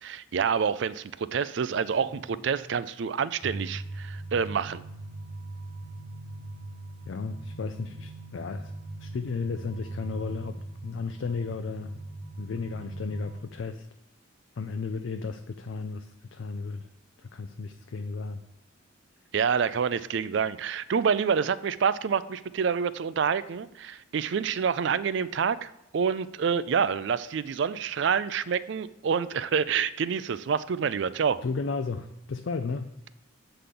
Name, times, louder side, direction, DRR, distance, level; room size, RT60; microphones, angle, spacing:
voice 1, 0.0-4.8 19.3-31.4, right 6 dB, 60° right, 16 dB, 0.4 m, -27 dB
sound 1, 1.9-3.6, equal, 20° right, 1.1 m, -52 dB
sound 2, 3.4-13.4, right 2 dB, 45° right, 0.9 m, -40 dB
voice 2, 7.1-8.7 9.0-12.0 12.4-13.9 14.6-16.9 17.2-18.4 31.4-33.1, left 4 dB, 65° left, 7 dB, 0.5 m, -34 dB
8.1 x 3.9 x 6.7 m, 0.86 s
head